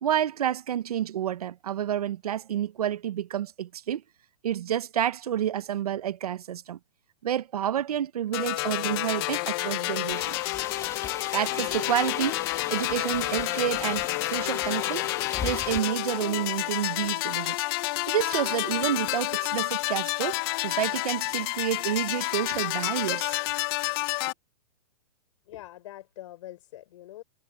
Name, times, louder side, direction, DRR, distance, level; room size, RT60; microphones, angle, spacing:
voice 1, 0.0-4.0 4.4-6.8 7.2-10.4 11.3-12.4 12.7-15.1 15.4-17.6 18.1-23.4, right 10 dB, 70° right, 1.1 m, -29 dB
sound 1, 8.3-24.3, left 22 dB, 35° left, 1.1 m, -29 dB
sound 2, 10.1-15.8, left 8 dB, 15° left, 2.3 m, -37 dB
voice 2, 25.4-27.2, left 14 dB, 50° left, 6.3 m, -44 dB
hypercardioid pair, 150°, 20 cm